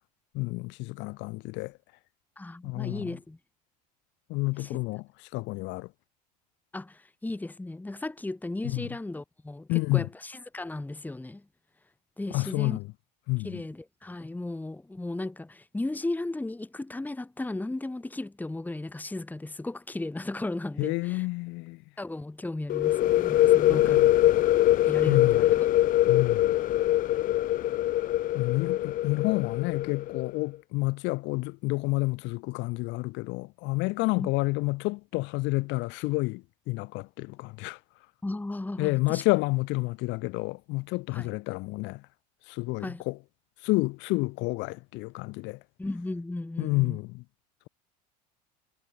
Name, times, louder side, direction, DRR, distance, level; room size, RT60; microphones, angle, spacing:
voice 1, 0.3-1.7 2.6-3.1 4.3-5.0 5.3-5.9 8.7-8.9 9.7-10.1 12.3-12.9 13.3-13.6 20.8-21.8 23.6-24.1 25.1-25.5 26.1-26.6 28.3-37.8 38.8-42.0 42.5-43.2 43.6-45.6 46.6-47.2, left 24 dB, 60° left, 1.8 m, -29 dB
voice 2, 2.4-3.4 4.6-4.8 6.7-11.4 12.2-12.8 13.4-21.3 22.0-24.3 24.9-25.7 34.2-34.3 38.2-39.2 41.1-41.3 42.8-43.0 45.8-47.0, left 2 dB, 10° left, 1.7 m, -35 dB
sound 1, 22.7-30.3, left 14 dB, 40° left, 0.6 m, -23 dB
hypercardioid pair, 80°, 21 cm